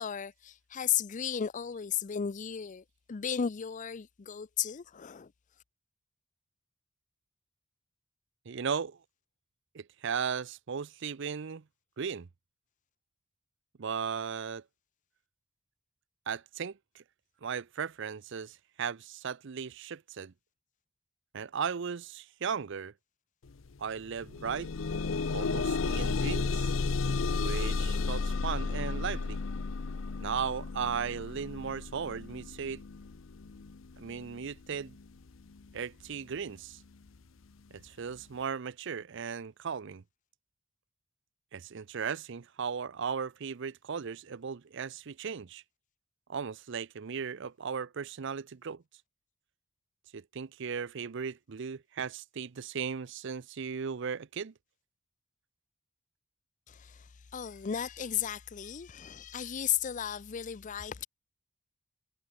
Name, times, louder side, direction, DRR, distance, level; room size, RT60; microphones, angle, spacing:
voice 1, 0.0-5.3 56.7-57.0 57.3-61.1, left 8 dB, 40° left, 0.5 m, -34 dB
voice 2, 8.5-9.0 9.7-11.6 12.0-12.3 13.8-14.6 16.3-17.0 17.4-20.3 21.3-22.9 23.8-24.7 25.3-26.7 27.4-29.4 30.2-32.8 34.0-35.0 35.7-36.8 37.7-40.0 41.5-45.6 46.3-48.8 50.1-54.5, right 6 dB, 65° right, 0.6 m, -36 dB
sound 1, 23.5-23.6 24.0-35.0 35.8-35.9 36.4-36.5, left 4 dB, 75° left, 0.7 m, -33 dB
head